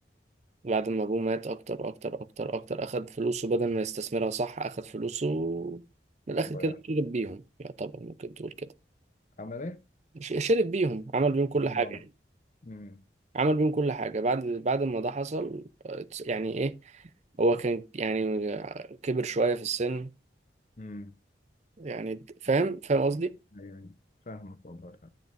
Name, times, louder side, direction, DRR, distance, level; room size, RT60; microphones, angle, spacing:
voice 1, 0.6-5.8 6.3-8.5 10.2-12.0 13.3-16.7 17.4-20.1 21.8-23.3, right 3 dB, 40° right, 0.5 m, -29 dB
voice 2, 6.4-6.8 9.4-9.8 11.6-12.0 12.6-13.0 20.8-21.1 23.5-24.0 24.3-25.1, left 2 dB, 45° left, 0.8 m, -42 dB
10.5 x 9.2 x 2.6 m
head